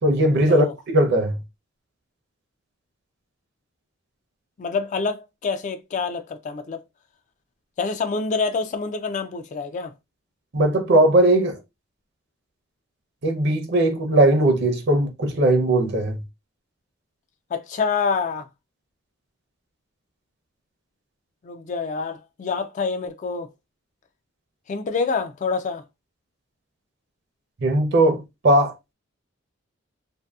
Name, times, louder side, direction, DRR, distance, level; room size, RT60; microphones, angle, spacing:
voice 1, 0.0-1.4 10.5-11.6 13.2-16.2 27.6-28.7, right 1 dB, 55° right, 0.6 m, -19 dB
voice 2, 4.6-6.8 7.8-9.9 17.5-18.5 21.4-23.5 24.7-25.8, left 4 dB, 35° left, 0.3 m, -27 dB
2.6 x 2.6 x 2.3 m
head